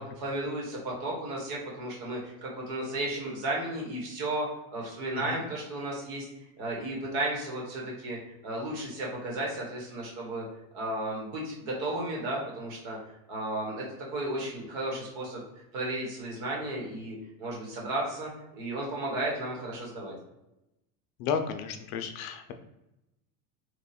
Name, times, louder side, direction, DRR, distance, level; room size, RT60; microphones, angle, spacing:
voice 1, 0.0-4.5 4.7-6.3 6.6-8.2 8.4-10.4 10.7-13.0 13.3-13.8 14.1-15.4 15.7-18.3 18.6-20.1, right 1 dB, 55° right, -3 dB, 1.4 m, -34 dB
voice 2, 21.2-22.5, left 7 dB, 65° left, 7 dB, 0.5 m, -32 dB
3.0 x 2.3 x 4.1 m, 0.89 s
supercardioid pair, 155°, 46 cm